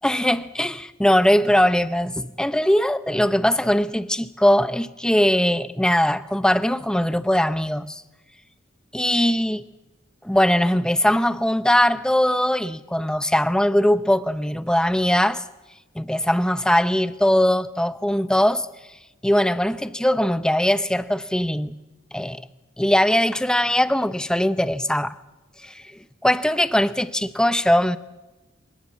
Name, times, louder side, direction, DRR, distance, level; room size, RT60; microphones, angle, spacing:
voice 1, 0.0-8.0 8.9-9.6 10.2-15.4 16.0-18.7 19.2-21.7 22.1-22.4 22.8-25.2 25.6-25.8 26.2-28.0, left 1 dB, 5° left, 0.7 m, -20 dB
28.5 x 18.5 x 7.3 m
head